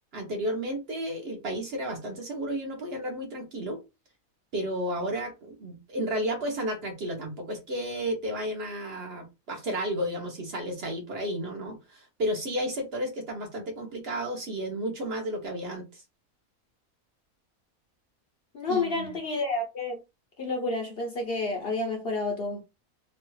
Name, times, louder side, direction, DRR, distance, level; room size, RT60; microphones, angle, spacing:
voice 1, 0.1-3.8 4.5-16.0 18.7-19.2, equal, 50° right, 0.9 m, -32 dB
voice 2, 18.5-20.0 20.4-22.6, left 3 dB, 55° left, 0.8 m, -30 dB
3.0 x 2.3 x 3.1 m
omnidirectional pair, 1.5 m